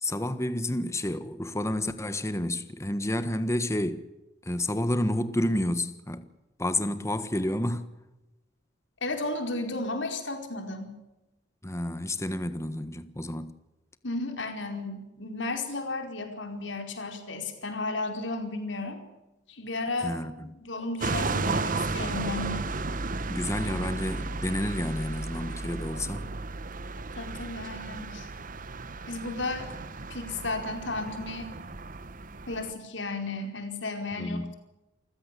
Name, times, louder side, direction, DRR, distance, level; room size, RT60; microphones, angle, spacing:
voice 1, 0.0-4.0 4.4-6.2 6.6-7.9 11.6-13.5 20.0-20.5 23.3-26.3 34.2-34.5, left 1 dB, 15° left, 1.4 m, -30 dB
voice 2, 9.0-10.9 14.0-19.0 19.5-22.7 27.2-28.3 29.1-29.7 30.1-31.5 32.5-34.5, left 2 dB, 80° left, 4.7 m, -34 dB
sound 1, 21.0-32.7, right 3 dB, 45° right, 1.1 m, -34 dB
28.5 x 16.0 x 8.4 m
head